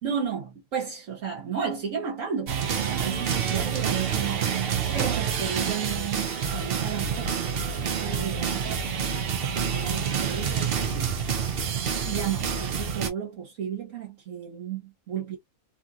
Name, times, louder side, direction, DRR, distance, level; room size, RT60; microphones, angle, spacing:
voice 1, 0.0-4.6 4.9-7.3 7.8-11.2 12.1-15.4, right 7 dB, 70° right, 1.3 m, -33 dB
sound 1, 2.5-13.1, right 7 dB, 55° right, 0.7 m, -28 dB
2.9 x 2.7 x 2.4 m
omnidirectional pair, 1.4 m